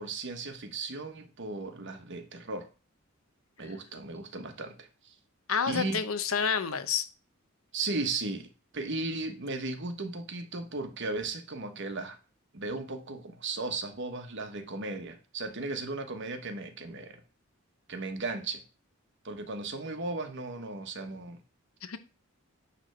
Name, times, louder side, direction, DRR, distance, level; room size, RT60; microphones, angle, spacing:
voice 1, 0.0-2.7 3.6-5.1 5.7-6.0 7.7-8.5 8.7-12.2 12.5-17.2 17.9-18.6 19.2-21.4, right 3 dB, 60° right, 1.3 m, -36 dB
voice 2, 5.5-7.1 21.8-22.0, left 6 dB, 80° left, 0.9 m, -29 dB
9.9 x 3.4 x 6.7 m
head